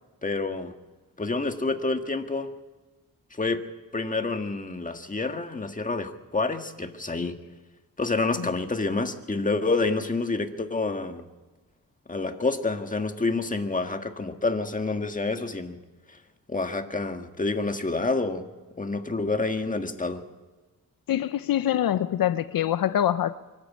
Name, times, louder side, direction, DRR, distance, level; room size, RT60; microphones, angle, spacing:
voice 1, 0.2-0.7 1.2-2.5 3.4-3.6 3.9-7.4 8.0-11.2 12.1-15.8 16.5-18.4 18.8-20.2, left 3 dB, 20° left, 1.7 m, -28 dB
voice 2, 21.1-23.4, left 11 dB, 75° left, 0.7 m, -25 dB
24.0 x 13.0 x 8.6 m
cardioid pair, 85°, 35 cm